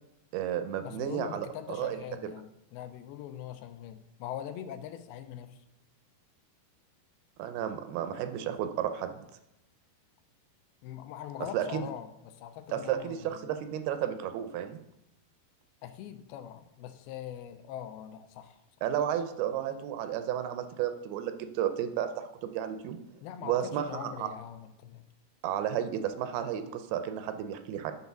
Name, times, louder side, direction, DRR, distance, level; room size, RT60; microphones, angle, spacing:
voice 1, 0.3-2.0 7.4-9.2 11.5-11.8 12.7-14.8 18.8-23.0 23.4-24.3 25.4-27.9, right 10 dB, 80° right, 9 dB, 2.4 m, -32 dB
voice 2, 0.8-5.6 10.8-13.5 15.8-18.6 23.2-25.1, left 10 dB, 85° left, 9 dB, 2.5 m, -42 dB
9.5 x 4.0 x 5.9 m, 0.85 s
omnidirectional pair, 4.5 m